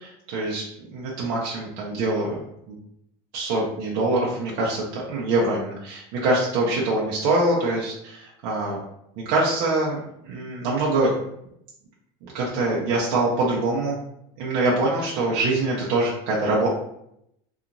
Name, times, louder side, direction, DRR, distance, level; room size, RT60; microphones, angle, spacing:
voice 1, 0.3-0.6 0.9-2.3 2.7-2.8 3.3-8.8 9.2-10.0 10.2-11.1 12.2-14.0 14.4-16.7, right 2 dB, 50° right, -5 dB, 0.6 m, -24 dB
2.9 x 2.4 x 2.5 m, 0.77 s
cardioid pair, 180°, 13 cm